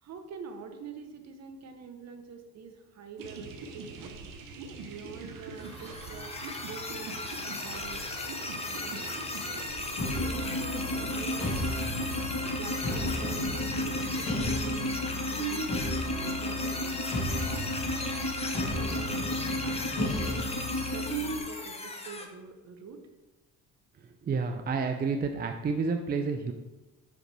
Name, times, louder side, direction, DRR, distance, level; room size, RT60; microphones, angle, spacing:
voice 1, 0.0-4.2 4.8-6.3 6.7-8.0 8.5-9.1 10.1-11.5 12.6-17.0 17.4-18.3 18.7-20.5 20.9-23.0, right 5 dB, 55° right, 6 dB, 0.9 m, -45 dB
sound 1, 3.2-14.3, right 3 dB, 85° right, 0.8 m, -43 dB
sound 2, 5.6-22.2, left 2 dB, 20° left, 0.8 m, -37 dB
sound 3, 10.0-21.4, left 1 dB, 65° left, 2.0 m, -32 dB
voice 2, 24.2-26.5, right 4 dB, 30° right, 5 dB, 0.5 m, -29 dB
5.6 x 5.0 x 3.3 m, 1.1 s
cardioid pair, 85°, 32 cm